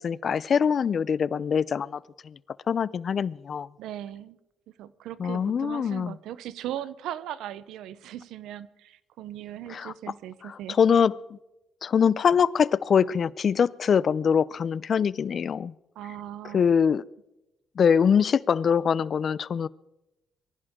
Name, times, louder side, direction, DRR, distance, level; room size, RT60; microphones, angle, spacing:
voice 1, 0.0-2.0 2.7-3.7 5.2-6.2 9.7-9.9 10.4-11.4 11.8-15.7 16.5-17.0 17.8-19.7, left 7 dB, 50° left, 20 dB, 0.5 m, -23 dB
voice 2, 3.8-4.4 4.8-10.8 16.0-16.6, right 12 dB, 85° right, 16 dB, 0.8 m, -38 dB
23.5 x 15.5 x 3.7 m, 0.94 s
cardioid pair, 90°, 0 cm